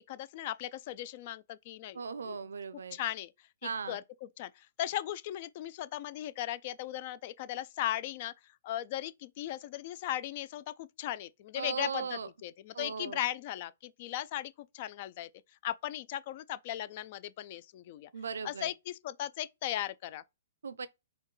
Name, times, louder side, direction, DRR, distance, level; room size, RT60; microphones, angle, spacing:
voice 1, 0.1-2.4 2.9-3.3 3.6-8.3 8.6-15.3 15.6-18.1 18.4-20.2, left 13 dB, 45° left, 0.3 m, -37 dB
voice 2, 1.9-3.0 3.6-4.0 11.6-12.3 12.7-13.2 18.1-18.7 20.6-20.9, right 6 dB, 80° right, 0.4 m, -38 dB
4.3 x 2.3 x 3.1 m
hypercardioid pair, 135°, 0 cm